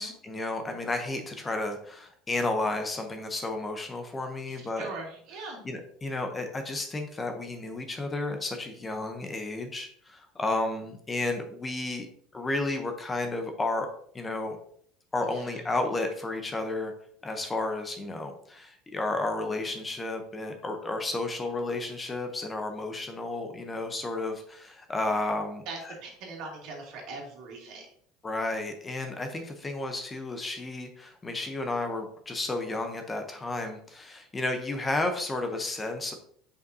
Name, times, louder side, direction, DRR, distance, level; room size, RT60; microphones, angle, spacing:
voice 1, 0.0-4.9 5.6-12.1 12.3-13.9 14.1-14.6 15.1-16.9 17.2-25.9 28.2-36.1, left 2 dB, 15° left, 5 dB, 0.7 m, -32 dB
voice 2, 4.5-5.6 15.2-15.6 25.7-27.8, right 3 dB, 60° right, 0 dB, 2.1 m, -41 dB
6.7 x 5.3 x 2.7 m, 0.63 s
cardioid pair, 145°, 0 cm